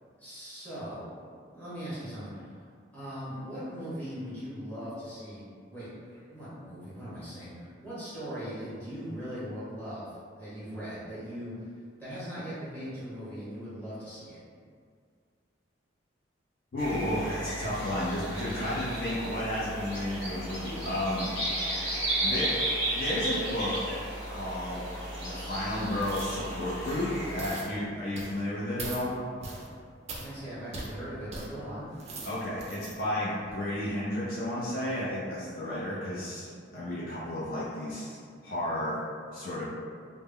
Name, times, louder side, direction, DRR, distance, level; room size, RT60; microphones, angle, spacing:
voice 1, 0.2-1.0 1.5-5.4 5.7-10.1 10.4-11.7 12.0-14.4 30.2-31.9, equal, 10° left, -12 dB, 0.9 m, -40 dB
voice 2, 16.7-21.3 22.2-22.5 22.9-23.8 24.3-24.9 25.2-29.2 32.2-39.0 39.3-39.7, left 1 dB, 50° left, -8 dB, 0.5 m, -32 dB
sound 1, 16.8-27.5, right 1 dB, 85° left, 1.0 m, -34 dB
sound 2, 26.0-26.4 26.7-27.0 27.4-27.7 28.1-28.4 28.8-29.0 29.4-29.7 30.1-30.3 30.7-30.9 31.3-31.5 31.9-32.9 33.4-33.5, right 3 dB, 35° right, 0.3 m, -41 dB
2.1 x 2.0 x 3.6 m, 2.1 s
head